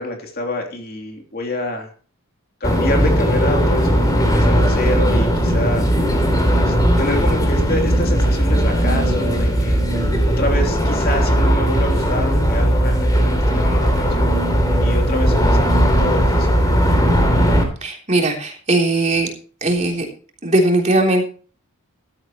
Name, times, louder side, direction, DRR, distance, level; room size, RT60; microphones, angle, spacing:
voice 1, 0.0-1.9 2.6-5.8 6.5-9.8 10.2-14.3 14.8-15.7 16.0-16.6, left 1 dB, 45° left, 3 dB, 3.2 m, -27 dB
sound 1, 2.6-17.6, equal, 15° left, 3.2 m, -17 dB
voice 2, 17.8-19.3 19.6-20.1 20.4-21.2, right 2 dB, 30° right, 1 dB, 3.5 m, -18 dB
15.5 x 13.0 x 3.1 m, 0.39 s
head